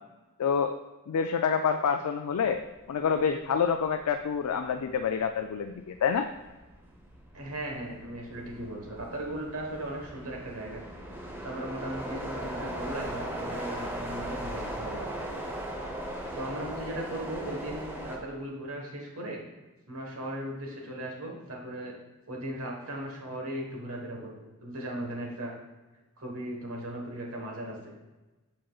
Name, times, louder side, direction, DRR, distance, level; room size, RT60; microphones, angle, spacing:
voice 1, 0.4-0.7 1.1-2.6 2.9-6.3, left 6 dB, 75° left, 5 dB, 0.4 m, -27 dB
sound 1, 3.2-3.4 3.8-18.2, right 1 dB, 10° right, 0.8 m, -38 dB
voice 2, 7.3-10.8 11.4-15.4 16.3-19.4 19.9-21.9 22.3-25.5 26.2-27.9, right 1 dB, 65° right, 0 dB, 1.3 m, -37 dB
7.5 x 5.7 x 2.3 m, 1.1 s
head